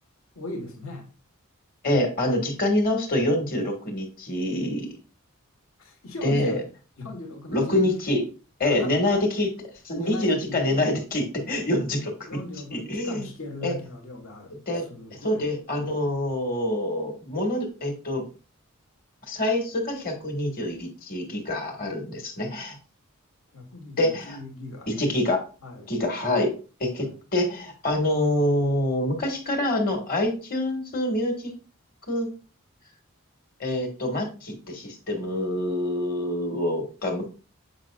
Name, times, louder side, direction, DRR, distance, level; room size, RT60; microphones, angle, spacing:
voice 1, 0.3-1.1 5.8-6.7 7.0-7.9 8.6-9.2 9.9-10.8 12.3-15.5 23.5-25.1 25.6-25.9 27.0-27.2, left 1 dB, 75° left, 1.4 m, -38 dB
voice 2, 1.8-4.9 6.2-6.6 7.5-8.2 8.6-9.5 9.8-12.1 12.7-13.3 13.6-13.7 14.7-14.8 15.2-18.2 19.2-22.8 24.0-24.4 24.9-25.4 25.9-26.5 26.8-31.5 32.1-32.3 33.6-37.3, left 1 dB, 40° left, 1.6 m, -26 dB
7.6 x 5.2 x 2.4 m
head